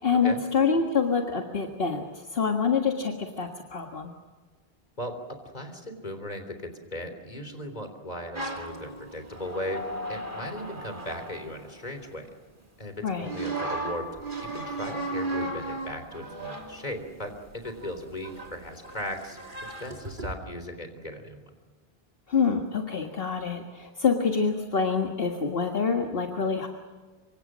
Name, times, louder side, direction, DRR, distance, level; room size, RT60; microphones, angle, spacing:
voice 1, 0.0-4.1 13.0-13.3 22.3-26.7, left 5 dB, 70° left, 2 dB, 1.9 m, -26 dB
voice 2, 5.0-12.3 12.8-14.1 14.4-19.4 19.8-21.5, left 1 dB, 45° left, 8 dB, 3.7 m, -37 dB
sound 1, 8.4-12.3 13.2-20.4, right 2 dB, 55° right, 3.0 m, -36 dB
26.5 x 24.5 x 6.3 m, 1.4 s
omnidirectional pair, 1.0 m